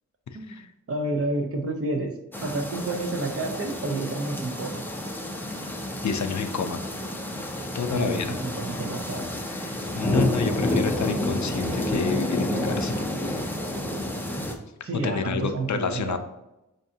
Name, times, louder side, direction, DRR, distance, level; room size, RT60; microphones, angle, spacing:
voice 1, 0.9-2.2 2.4-4.8 7.9-9.2 14.8-16.2, right 2 dB, 50° right, 3 dB, 0.6 m, -29 dB
sound 1, 2.3-14.5, left 1 dB, 5° left, 0.5 m, -29 dB
voice 2, 6.0-6.8 7.7-8.3 9.6-13.0 15.0-16.2, left 6 dB, 70° left, 8 dB, 0.4 m, -29 dB
5.3 x 2.5 x 2.7 m, 0.93 s
wide cardioid pair, 85°, 31 cm